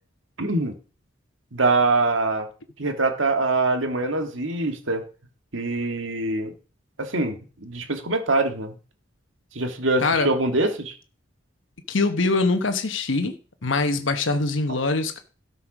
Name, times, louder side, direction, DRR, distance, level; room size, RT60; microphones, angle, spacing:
voice 1, 0.4-0.8 1.5-2.5 2.8-5.0 5.5-6.5 7.0-8.8 9.6-10.9, right 2 dB, 80° right, 1.8 m, -24 dB
voice 2, 11.9-13.3 13.6-15.2, left 3 dB, 75° left, 1.1 m, -23 dB
12.5 x 5.8 x 6.0 m
head